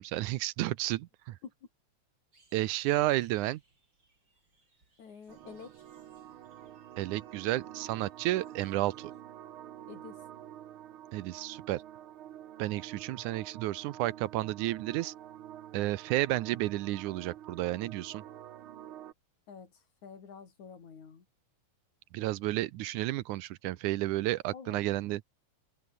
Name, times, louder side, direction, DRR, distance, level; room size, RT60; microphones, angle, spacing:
voice 1, 0.0-1.4 2.5-3.6 7.0-9.1 11.1-11.8 12.6-15.1 15.7-18.2 22.1-25.2, right 16 dB, 85° right, 2.2 m, -31 dB
sound 1, 2.3-9.2, right 2 dB, 35° right, 6.9 m, -69 dB
voice 2, 5.0-5.7 9.9-10.2 19.5-21.2 24.5-24.9, left 6 dB, 70° left, 5.0 m, -48 dB
sound 2, 5.3-19.1, right 11 dB, 65° right, 1.4 m, -48 dB
open air
omnidirectional pair, 3.5 m